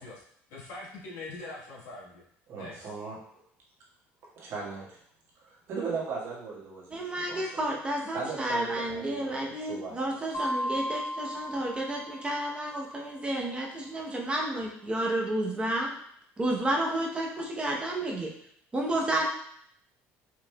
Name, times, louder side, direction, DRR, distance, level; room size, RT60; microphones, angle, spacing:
voice 1, 0.5-2.2 2.5-2.9, left 2 dB, 70° left, -3 dB, 1.3 m, -42 dB
voice 2, 2.5-3.2 4.4-5.0 5.4-7.5 8.1-9.9, right 4 dB, 55° right, -5 dB, 1.6 m, -38 dB
voice 3, 6.9-15.9 16.4-18.3 18.7-19.2, right 1 dB, 20° right, -1 dB, 0.8 m, -31 dB
sound 1, 10.3-12.8, equal, 40° left, 0.8 m, -35 dB
4.8 x 3.1 x 2.2 m, 0.66 s
cardioid pair, 110°, 5 cm